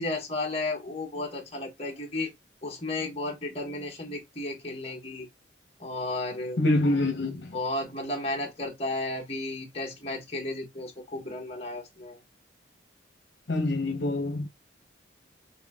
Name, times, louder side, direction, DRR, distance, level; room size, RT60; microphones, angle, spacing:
voice 1, 0.0-2.3 2.6-5.3 5.8-6.6 7.5-12.2, left 2 dB, 30° left, 1.5 m, -33 dB
voice 2, 6.6-7.5 13.5-14.5, left 2 dB, 70° left, 1.0 m, -25 dB
6.0 x 3.4 x 2.3 m
head